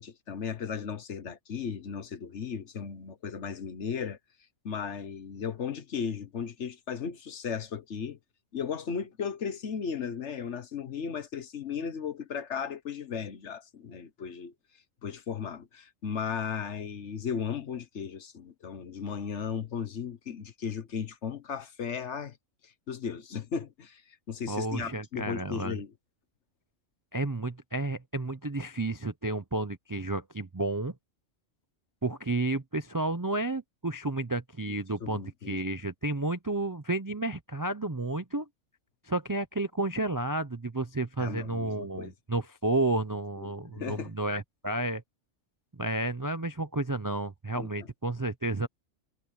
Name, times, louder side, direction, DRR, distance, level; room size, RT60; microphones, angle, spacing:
voice 1, 0.0-4.2 4.6-8.2 8.5-14.5 15.0-22.4 22.6-24.0 24.3-25.9 35.0-35.6 41.2-42.1 43.4-44.1 47.6-47.9, left 6 dB, 60° left, 1.4 m, -36 dB
voice 2, 24.5-25.8 27.1-30.9 32.0-38.5 39.0-45.0 45.8-48.7, right 2 dB, 25° right, 0.5 m, -31 dB
omnidirectional pair, 1.3 m